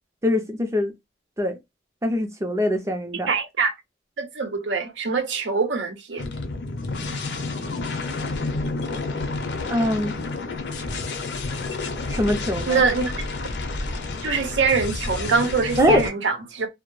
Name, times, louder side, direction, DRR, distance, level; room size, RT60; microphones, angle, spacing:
voice 1, 0.2-0.9 1.4-1.6 2.0-3.3 9.7-10.1 12.1-12.8 15.8-16.0, left 1 dB, 15° right, 0.4 m, -22 dB
voice 2, 3.3-3.7 4.2-6.3 12.7-13.1 14.2-16.7, right 5 dB, 85° right, 0.6 m, -23 dB
sound 1, 6.2-16.1, left 3 dB, 70° left, 0.5 m, -30 dB
2.2 x 2.0 x 3.0 m
head